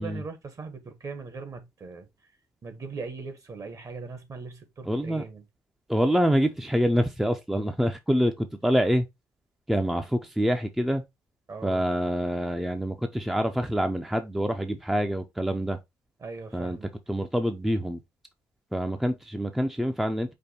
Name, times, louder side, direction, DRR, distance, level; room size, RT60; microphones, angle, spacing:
voice 1, 0.0-2.1 2.6-5.4 11.5-11.8 16.2-16.9, right 4 dB, 45° right, 1.3 m, -39 dB
voice 2, 4.9-5.2 5.9-9.1 9.7-11.0 11.6-15.8 16.5-16.8 17.1-18.0 18.7-20.3, equal, 5° right, 0.5 m, -26 dB
5.1 x 2.2 x 4.1 m
supercardioid pair, 70°, 8 cm